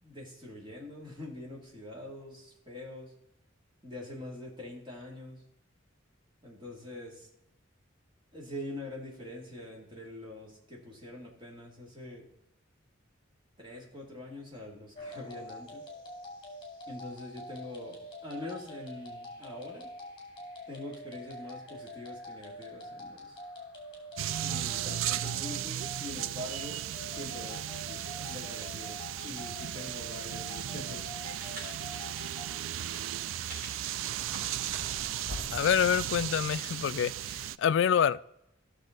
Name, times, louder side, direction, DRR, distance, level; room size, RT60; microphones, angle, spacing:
voice 1, 0.0-3.1 3.8-5.4 6.4-7.3 8.3-12.3 13.6-15.8 16.9-19.9 20.7-23.4 24.4-31.1, left 1 dB, 25° right, 2.5 m, -44 dB
sound 1, 14.9-32.5, left 1 dB, 25° left, 2.7 m, -45 dB
sound 2, 24.2-37.6, right 12 dB, 80° right, 0.3 m, -36 dB
sound 3, 31.3-36.3, equal, 45° right, 3.7 m, -46 dB
voice 2, 35.5-38.2, left 8 dB, 65° left, 0.3 m, -27 dB
15.0 x 6.4 x 3.9 m
head